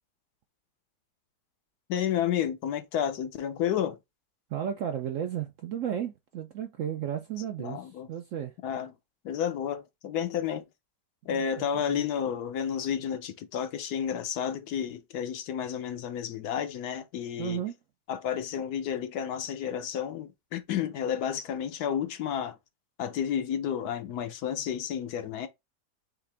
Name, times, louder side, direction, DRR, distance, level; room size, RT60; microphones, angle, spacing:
voice 1, 1.9-4.0 7.6-8.1 8.6-8.9 9.2-10.7 11.2-17.6 18.1-22.6 23.0-25.5, left 9 dB, 70° left, 1.1 m, -31 dB
voice 2, 4.5-8.5 11.3-12.0 17.4-17.7, right 9 dB, 70° right, 0.8 m, -34 dB
5.8 x 2.5 x 3.3 m
omnidirectional pair, 1.8 m